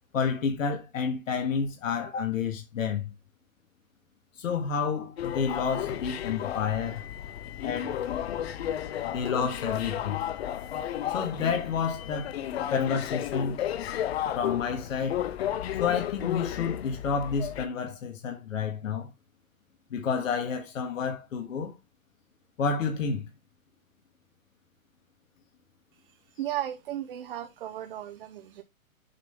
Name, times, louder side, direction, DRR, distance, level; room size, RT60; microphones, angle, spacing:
voice 1, 0.1-3.1 4.4-7.0 7.6-8.0 9.0-10.2 11.1-12.4 12.7-13.7 14.3-15.2 15.8-19.1 19.9-21.7 22.6-23.3, left 6 dB, 65° left, 1.7 m, -30 dB
sound 1, 5.2-17.7, left 11 dB, 45° left, 0.8 m, -33 dB
voice 2, 26.4-28.6, right 12 dB, 40° right, 0.7 m, -35 dB
7.4 x 3.8 x 4.4 m
hypercardioid pair, 145°, 42 cm